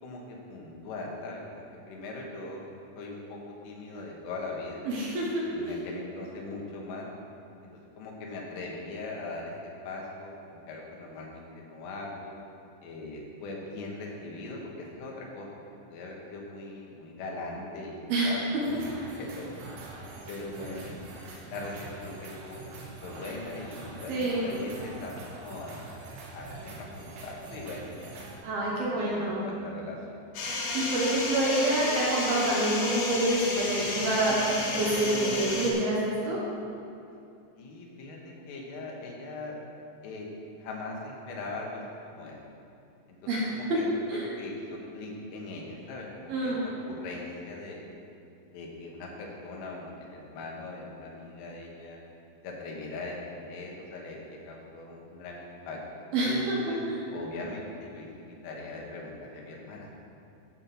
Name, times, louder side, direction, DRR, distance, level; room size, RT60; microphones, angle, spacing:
voice 1, 0.0-2.6 3.0-3.4 3.6-4.8 5.4-7.1 8.0-9.5 9.8-12.4 12.8-18.9 19.2-19.5 20.3-21.1 21.5-25.8 26.3-28.2 28.7-30.2 37.6-38.2 38.5-39.6 40.0-40.3 40.6-41.8 42.1-42.4 43.1-43.2 43.5-47.8 48.4-52.0 52.4-55.8 56.2-56.8 57.1-59.9, left 2 dB, 85° left, -1 dB, 4.0 m, -40 dB
voice 2, 4.9-5.8 18.1-18.3 18.9-19.0 24.1-24.5 28.4-29.5 30.7-34.4 34.8-36.4 43.3-43.5 44.1-44.4 46.3-46.7 56.1-57.1, right 1 dB, 65° right, -4 dB, 2.7 m, -27 dB
sound 1, 18.6-28.4, right 3 dB, 90° right, 4.0 m, -44 dB
sound 2, 30.3-35.7, left 2 dB, 65° left, 2.5 m, -32 dB
13.0 x 5.4 x 6.0 m, 2.6 s
omnidirectional pair, 5.5 m